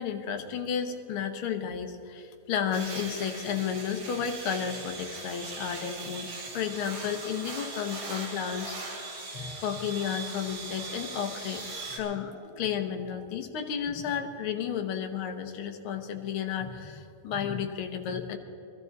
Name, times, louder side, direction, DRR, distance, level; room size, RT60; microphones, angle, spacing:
voice 1, 0.0-11.6 11.9-12.3 12.6-18.4, left 8 dB, 60° left, 4 dB, 1.5 m, -32 dB
sound 1, 2.7-12.0, right 3 dB, 85° right, 4.0 m, -40 dB
sound 2, 8.7-11.1 11.6-13.5 13.8-14.4, left 2 dB, 40° left, 2.9 m, -51 dB
22.0 x 13.5 x 4.1 m, 2.6 s
omnidirectional pair, 3.5 m